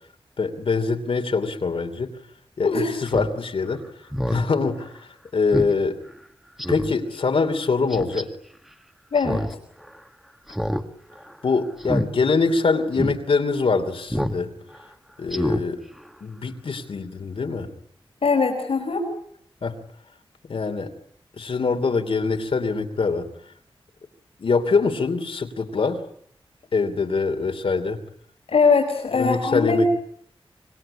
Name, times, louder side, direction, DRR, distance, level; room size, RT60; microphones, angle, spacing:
voice 1, 0.4-2.1 2.6-3.8 4.3-6.0 6.7-8.3 11.4-14.5 15.2-15.8 16.2-17.7 19.6-19.7 20.5-20.9 21.4-23.3 24.4-26.0 26.7-28.0 29.1-29.9, left 4 dB, 70° left, 6 dB, 3.0 m, -24 dB
Speech synthesizer, 3.1-3.3 3.7-3.8 4.1-4.5 4.9-5.0 5.5-5.7 6.1-6.2 6.6-6.9 7.9-8.2 9.2-9.5 9.8-9.9 10.5-10.8 11.1-11.4 11.8-12.1 12.5-12.6 12.9-13.2 14.1-14.4 14.7-14.8 15.3-15.6 16.0-16.1, equal, 5° right, 2.0 m, -26 dB
voice 2, 9.1-9.4 18.2-19.1 28.5-29.9, left 4 dB, 90° left, 1 dB, 4.8 m, -21 dB
26.0 x 20.5 x 9.9 m, 0.66 s
wide cardioid pair, 95°, 10 cm